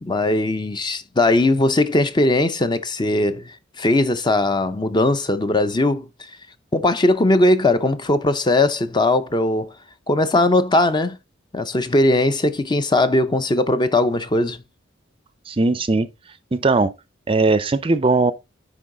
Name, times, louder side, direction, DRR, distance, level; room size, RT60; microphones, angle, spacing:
voice 1, 0.0-6.3 6.7-9.7 10.1-11.2 11.5-14.6, left 2 dB, 20° left, 0.6 m, -19 dB
voice 2, 15.5-16.1 16.5-16.9 17.3-18.3, right 3 dB, 25° right, 0.5 m, -18 dB
10.0 x 3.9 x 3.7 m
head